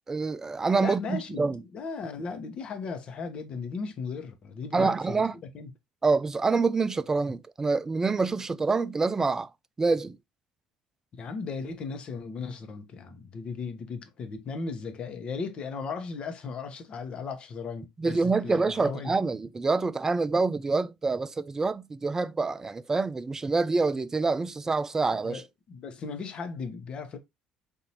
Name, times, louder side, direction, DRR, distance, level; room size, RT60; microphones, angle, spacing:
voice 1, 0.1-1.6 4.7-5.4 6.0-9.5 9.8-10.2 18.0-25.4, right 4 dB, 20° right, 0.4 m, -26 dB
voice 2, 0.8-5.2 5.5-5.7 11.2-19.1 25.2-27.2, left 5 dB, 50° left, 0.9 m, -36 dB
3.9 x 2.6 x 2.9 m
hypercardioid pair, 65°, 2 cm